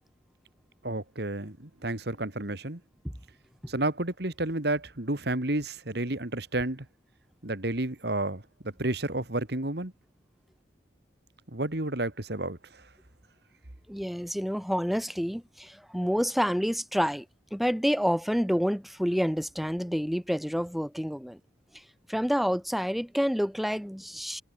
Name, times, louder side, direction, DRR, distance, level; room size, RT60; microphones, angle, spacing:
voice 1, 0.8-2.8 3.7-6.9 7.4-9.9 11.5-12.8, right 2 dB, 55° right, 2.2 m, -31 dB
voice 2, 13.9-17.2 17.5-21.4 21.7-21.8 22.1-24.4, equal, ahead, 3.0 m, -28 dB
head